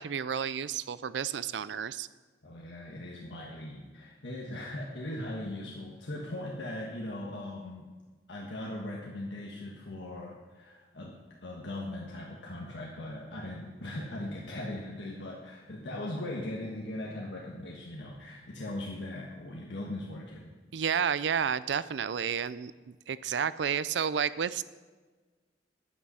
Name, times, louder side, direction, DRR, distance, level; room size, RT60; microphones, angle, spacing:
voice 1, 0.0-2.1 20.7-22.7 23.1-24.6, right 7 dB, 80° right, 17 dB, 0.4 m, -31 dB
voice 2, 2.4-7.9 8.3-20.5, left 1 dB, 80° left, -2 dB, 1.4 m, -39 dB
11.0 x 8.8 x 5.6 m, 1.3 s
head